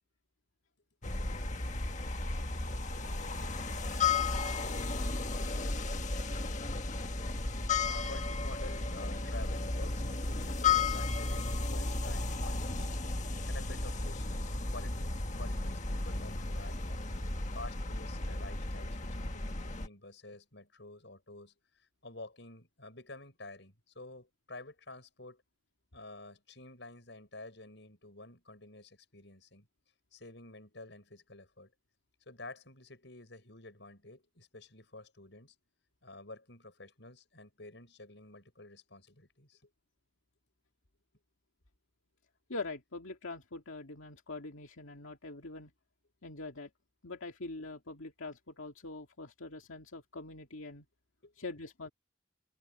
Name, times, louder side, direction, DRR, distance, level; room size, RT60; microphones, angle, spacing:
sound 1, 1.0-19.9, left 3 dB, 35° left, 1.5 m, -34 dB
voice 1, 7.8-17.2 17.5-25.4 25.9-29.7 30.1-31.7 32.3-35.5 36.0-39.7 51.2-51.5, left 2 dB, 65° left, 6.3 m, -50 dB
voice 2, 42.5-45.7 46.2-46.7 47.0-50.9 51.4-51.9, left 3 dB, 85° left, 2.2 m, -43 dB
head